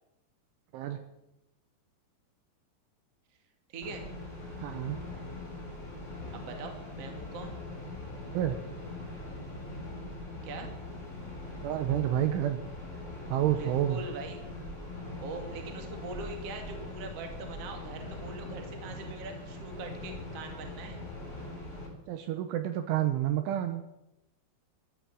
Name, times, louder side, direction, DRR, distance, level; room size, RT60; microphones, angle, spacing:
voice 1, 0.7-1.0 4.6-5.0 8.3-8.6 11.6-12.6 13.3-14.0 22.1-23.8, right 12 dB, 75° right, 8 dB, 3.1 m, -29 dB
voice 2, 3.7-4.0 6.3-7.6 10.4-10.7 13.6-14.4 15.2-21.0, right 3 dB, 45° right, 4 dB, 2.3 m, -42 dB
sound 1, 3.8-21.9, left 2 dB, 15° left, 3.8 m, -41 dB
13.0 x 13.0 x 7.6 m, 0.90 s
omnidirectional pair, 6.0 m